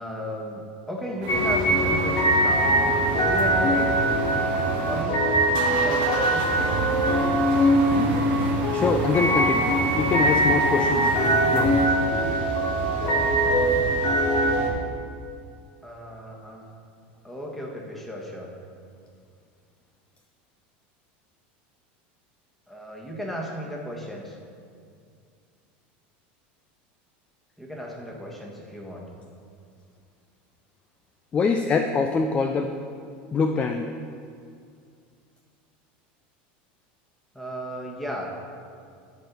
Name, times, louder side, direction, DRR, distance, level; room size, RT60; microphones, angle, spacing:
voice 1, 0.0-2.9 3.2-4.0 4.8-5.2 5.7-6.5 15.8-16.7 17.2-18.5 22.7-24.4 27.6-29.1 37.3-38.3, equal, 5° left, -2 dB, 1.4 m, -35 dB
sound 1, 1.2-5.0 5.3-11.9, right 3 dB, 75° right, 1.4 m, -32 dB
sound 2, 1.3-14.7, right 1 dB, 60° left, 2.0 m, -22 dB
voice 2, 8.7-11.1 11.5-11.9 31.3-32.8 33.3-33.9, left 5 dB, 20° left, 6 dB, 0.4 m, -24 dB
11.5 x 4.4 x 7.0 m, 2.3 s
supercardioid pair, 140°, 5 cm